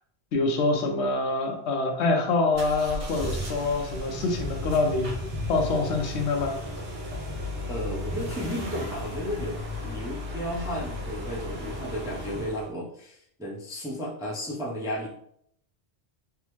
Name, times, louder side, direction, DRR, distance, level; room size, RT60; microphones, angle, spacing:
voice 1, 0.3-5.1 5.5-6.6, left 3 dB, 80° left, 3 dB, 0.9 m, -25 dB
sound 1, 2.5-12.7, left 1 dB, 85° right, 1.2 m, -35 dB
voice 2, 7.7-15.1, equal, 5° right, -4 dB, 0.3 m, -34 dB
3.4 x 2.0 x 3.0 m, 0.69 s
omnidirectional pair, 1.1 m